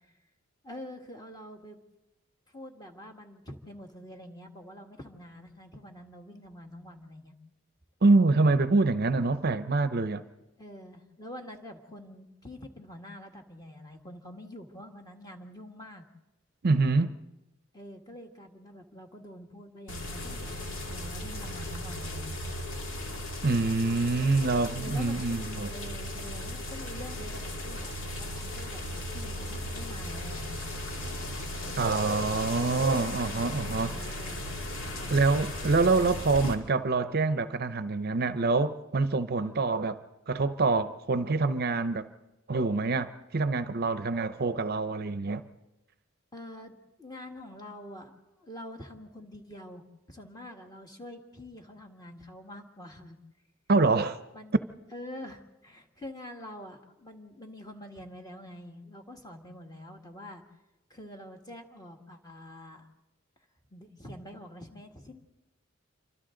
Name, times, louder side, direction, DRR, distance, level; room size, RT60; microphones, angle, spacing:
voice 1, 0.6-1.8 2.5-7.4 10.6-16.0 17.7-22.4 24.2-24.3 24.7-25.4 25.7-30.6 33.8-34.4 34.9-35.2 39.4-39.6 46.3-46.7 47.0-49.8 50.1-53.2 54.3-54.6 54.9-60.4 60.9-62.9 63.7-65.2, left 1 dB, 20° left, 1.7 m, -46 dB
voice 2, 8.0-10.2 16.6-17.1 23.4-25.7 31.8-34.0 35.1-40.0 40.3-42.1 42.5-45.4 53.7-54.2, right 3 dB, 50° right, 0.6 m, -26 dB
sound 1, 19.9-36.5, left 1 dB, 70° left, 2.5 m, -36 dB
28.0 x 25.0 x 3.8 m
head